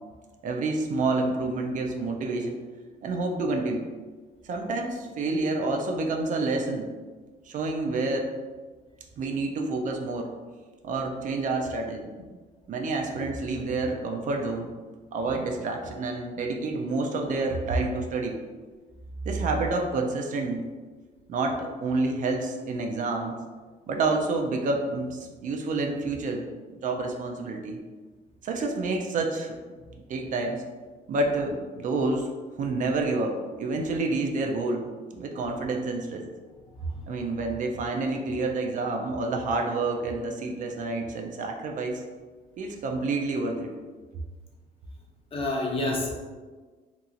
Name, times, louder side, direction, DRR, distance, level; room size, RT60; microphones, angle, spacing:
voice 1, 0.4-2.6 3.0-3.8 4.4-6.9 7.4-8.3 9.2-10.3 10.8-12.1 12.7-14.7 15.1-18.4 19.3-20.6 21.3-23.4 23.9-26.5 26.8-27.8 28.4-29.6 30.1-30.6 31.1-32.3 32.6-34.9 35.2-36.3 37.1-42.0 42.6-43.7, right 3 dB, 50° right, 2 dB, 0.4 m, -28 dB
voice 2, 45.3-46.1, left 2 dB, 35° left, -1 dB, 0.7 m, -28 dB
2.9 x 2.8 x 2.4 m, 1.4 s
cardioid pair, 110°, 17 cm